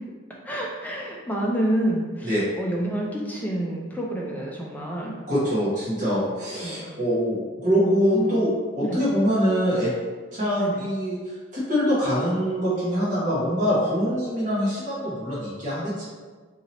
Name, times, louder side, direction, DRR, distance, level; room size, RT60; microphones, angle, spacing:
voice 1, 0.4-5.2 6.6-6.9 7.7-8.4 8.8-9.1 10.6-10.8, right 1 dB, 10° left, -2 dB, 0.4 m, -28 dB
voice 2, 5.3-8.5 8.7-9.9 10.3-11.2 11.5-16.1, equal, 40° right, -9 dB, 1.1 m, -24 dB
2.8 x 2.8 x 4.1 m, 1.5 s
head